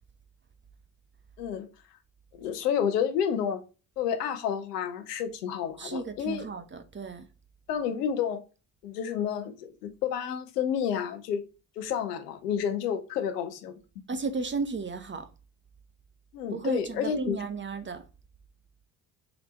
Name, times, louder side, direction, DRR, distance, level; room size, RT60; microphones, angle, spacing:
voice 1, 1.4-1.7 2.3-3.6 4.0-6.5 7.7-8.4 8.8-11.4 11.8-13.7 16.3-17.4, left 8 dB, 85° left, 0.6 m, -30 dB
voice 2, 5.8-7.2 14.1-15.3 16.5-18.0, right 4 dB, 25° right, 0.8 m, -34 dB
3.9 x 3.3 x 2.8 m
hypercardioid pair, 45°, 46 cm